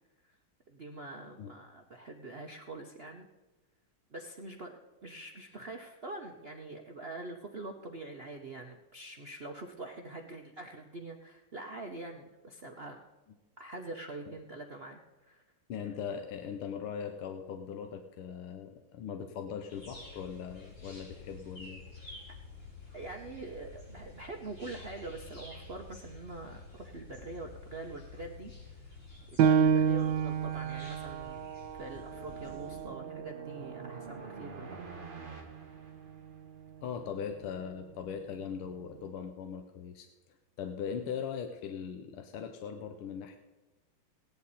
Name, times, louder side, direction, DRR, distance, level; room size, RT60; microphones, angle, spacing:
voice 1, 0.7-3.3 4.1-13.0 13.6-15.0 15.3-15.4 22.9-29.0 29.4-31.5 31.8-34.9, right 2 dB, 60° right, 2 dB, 0.6 m, -44 dB
voice 2, 15.7-21.8 36.8-43.4, left 7 dB, 80° left, 6 dB, 1.7 m, -40 dB
sound 1, 19.7-32.9, left 3 dB, 65° left, 5.5 m, -50 dB
Piano, 29.4-34.6 35.0-35.1 35.7-36.2, right 7 dB, 80° right, 0.9 m, -30 dB
sound 2, 31.7-36.6, right 4 dB, 30° right, 1.3 m, -48 dB
17.0 x 10.5 x 4.2 m, 1.2 s
omnidirectional pair, 2.4 m